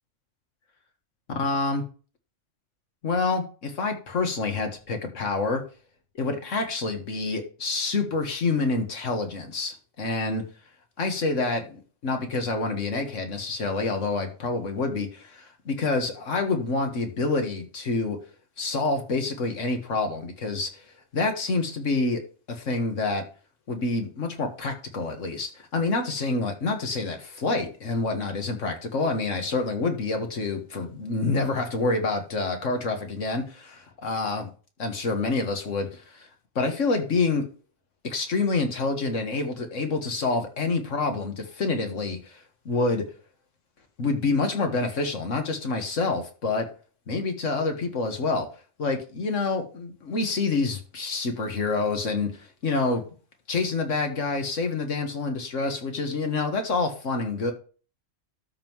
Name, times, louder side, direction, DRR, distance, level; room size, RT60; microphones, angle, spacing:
voice 1, 1.4-1.8 3.0-5.6 6.2-10.4 11.0-18.2 18.6-20.9 21.1-22.2 22.5-23.2 23.7-34.5 34.8-36.3 36.6-37.4 38.0-43.0 44.0-46.7 47.1-48.5 48.8-53.0 53.5-57.5, left 3 dB, 85° left, 5 dB, 1.9 m, -27 dB
13.0 x 5.5 x 3.1 m, 0.37 s
omnidirectional pair, 1.3 m